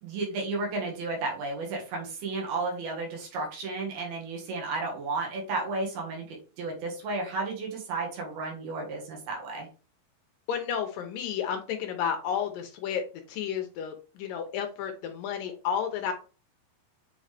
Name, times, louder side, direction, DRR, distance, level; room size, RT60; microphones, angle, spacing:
voice 1, 0.0-9.7, right 3 dB, 85° right, -1 dB, 3.6 m, -33 dB
voice 2, 10.5-16.1, left 8 dB, 75° left, 5 dB, 2.3 m, -32 dB
7.4 x 3.8 x 3.3 m, 0.35 s
omnidirectional pair, 4.2 m